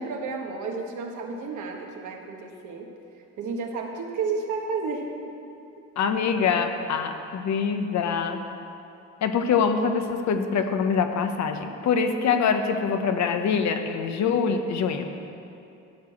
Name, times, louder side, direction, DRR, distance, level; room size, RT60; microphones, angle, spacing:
voice 1, 0.0-2.9 3.4-5.1, right 4 dB, 75° right, 1 dB, 1.4 m, -32 dB
voice 2, 6.0-8.4 9.2-15.1, left 6 dB, 65° left, 7 dB, 0.9 m, -24 dB
11.5 x 4.9 x 8.5 m, 2.7 s
cardioid pair, 90°, 30 cm